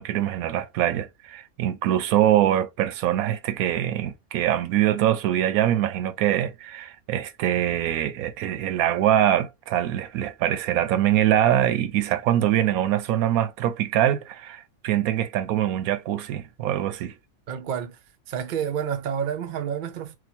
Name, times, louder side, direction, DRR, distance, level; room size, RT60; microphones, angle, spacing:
voice 1, 0.0-17.1, right 12 dB, 80° right, 1.0 m, -23 dB
voice 2, 17.5-18.0 18.3-20.2, right 8 dB, 60° right, 0.5 m, -29 dB
2.9 x 2.3 x 4.1 m
omnidirectional pair, 1.5 m